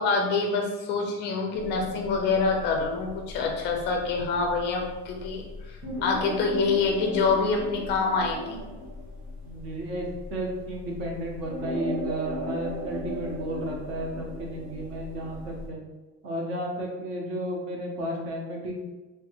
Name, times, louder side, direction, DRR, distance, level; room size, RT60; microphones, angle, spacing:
voice 1, 0.0-5.8 6.0-8.6, left 4 dB, 30° left, 2 dB, 0.5 m, -26 dB
sound 1, 1.6-15.7, equal, 70° right, 1.3 m, -37 dB
voice 2, 9.4-15.8 16.2-18.8, right 1 dB, 40° right, 0 dB, 0.6 m, -33 dB
3.3 x 2.5 x 2.8 m, 1.2 s
cardioid pair, 175°, 34 cm